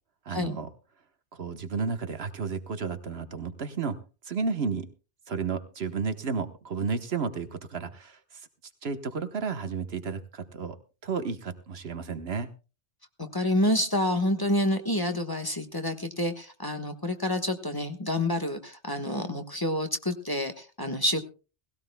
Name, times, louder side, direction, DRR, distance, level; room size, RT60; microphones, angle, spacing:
voice 1, 0.2-0.7 1.3-4.0 4.3-4.9 5.3-8.2 8.8-10.8 11.0-12.5, right 5 dB, 65° right, 9 dB, 1.3 m, -32 dB
voice 2, 13.2-21.2, left 1 dB, 20° left, 6 dB, 1.2 m, -28 dB
19.0 x 17.0 x 2.2 m, 0.33 s
omnidirectional pair, 1.1 m